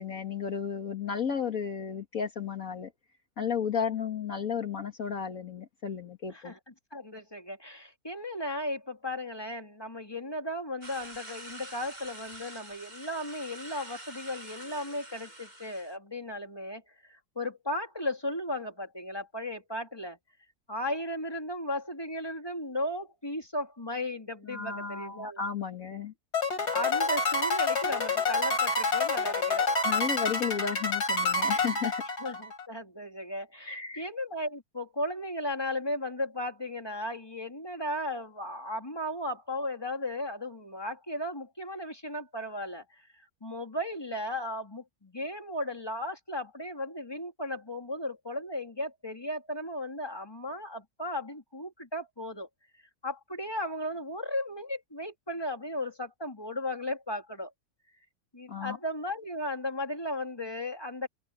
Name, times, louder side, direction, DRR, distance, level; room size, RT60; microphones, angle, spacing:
voice 1, 0.0-2.9 3.4-6.5 24.5-26.1 29.8-32.0 33.7-34.0 58.5-58.8, left 6 dB, 60° left, 2.3 m, -33 dB
voice 2, 6.3-16.8 17.1-20.2 20.7-25.4 26.7-29.7 32.2-42.8 43.4-52.5 53.0-57.5 58.3-61.1, left 1 dB, 15° left, 2.5 m, -35 dB
sound 1, 10.8-16.0, right 1 dB, 25° right, 6.2 m, -46 dB
sound 2, 26.3-32.6, left 3 dB, 80° left, 4.4 m, -28 dB
omnidirectional pair, 1.6 m